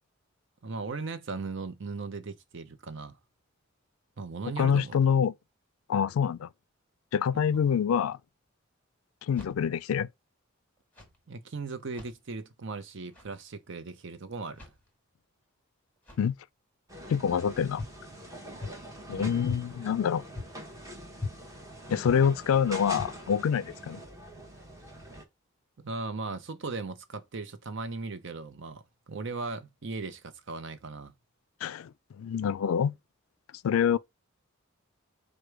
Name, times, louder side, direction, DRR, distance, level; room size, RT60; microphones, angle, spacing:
voice 1, 0.6-3.2 4.2-5.0 7.3-7.6 11.3-14.6 19.1-19.5 25.8-31.1, right 3 dB, 60° right, 0.6 m, -38 dB
voice 2, 4.6-5.3 5.9-6.5 7.1-8.2 9.3-10.1 16.2-16.4 17.1-17.8 19.1-20.2 21.9-24.0 31.6-31.9 32.2-33.0 33.6-34.0, left 7 dB, 90° left, 0.3 m, -26 dB
sound 1, 9.2-9.9 10.8-11.2 11.8-12.2 13.0-13.4 14.5-14.9 16.0-16.4 17.8-18.0 18.6-18.9 19.5-19.7 20.3-20.7 21.2-21.4 22.0-22.3 22.9-23.3, left 3 dB, 10° left, 1.5 m, -41 dB
sound 2, 16.9-25.2, right 1 dB, 15° right, 1.0 m, -45 dB
4.8 x 2.2 x 4.5 m
head